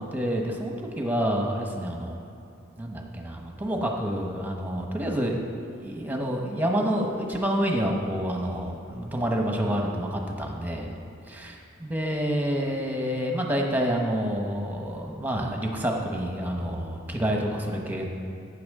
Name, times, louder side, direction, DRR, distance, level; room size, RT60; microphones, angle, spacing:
voice 1, 0.0-2.2 2.8-5.4 5.8-10.9 11.3-11.5 11.8-18.1, equal, 10° right, 0 dB, 1.0 m, -28 dB
12.0 x 8.4 x 3.7 m, 2.7 s
head